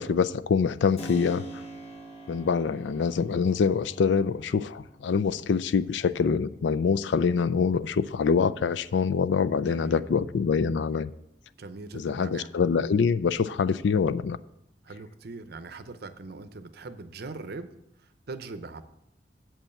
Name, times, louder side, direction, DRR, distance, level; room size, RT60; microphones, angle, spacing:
voice 1, 0.0-1.4 2.3-11.1 11.9-14.4, left 5 dB, 70° left, 0.4 m, -25 dB
Keyboard (musical), 1.0-9.5, right 2 dB, 35° left, 1.3 m, -46 dB
voice 2, 9.7-10.1 11.6-12.5 14.8-17.7 18.0-18.8, right 3 dB, 60° right, 0.7 m, -41 dB
7.5 x 5.4 x 7.1 m
head